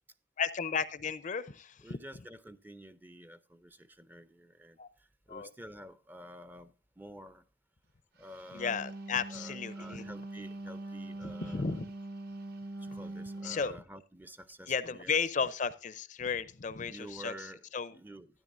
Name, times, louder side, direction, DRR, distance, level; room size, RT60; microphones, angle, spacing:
voice 1, 0.4-1.8 4.8-4.9 5.3-5.5 8.5-10.0 11.2-11.8 13.4-13.8 14.7-17.9, left 5 dB, 45° left, 0.6 m, -34 dB
voice 2, 1.8-4.8 5.3-6.7 7.0-7.4 8.2-8.7 9.3-11.7 12.9-15.5 16.9-17.6 17.9-18.3, right 1 dB, 10° right, 0.5 m, -50 dB
Wind instrument woodwind instrument, 8.3-13.7, right 2 dB, 60° right, 1.2 m, -43 dB
12.5 x 10.5 x 2.6 m
head